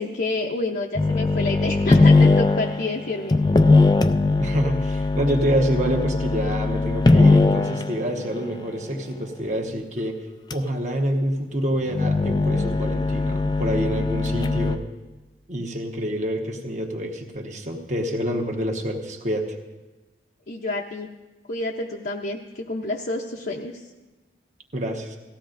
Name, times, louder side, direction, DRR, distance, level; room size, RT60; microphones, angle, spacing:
voice 1, 0.0-3.4 20.5-21.1 21.5-23.9, left 2 dB, 55° left, -1 dB, 0.7 m, -29 dB
sound 1, 1.0-8.0 10.5-10.6 11.9-14.8, left 3 dB, 20° left, 0.3 m, -20 dB
voice 2, 4.4-10.2 10.5-14.9 15.5-19.5 24.7-25.2, equal, 40° right, 2 dB, 1.2 m, -27 dB
18.0 x 14.5 x 2.6 m, 1.1 s
head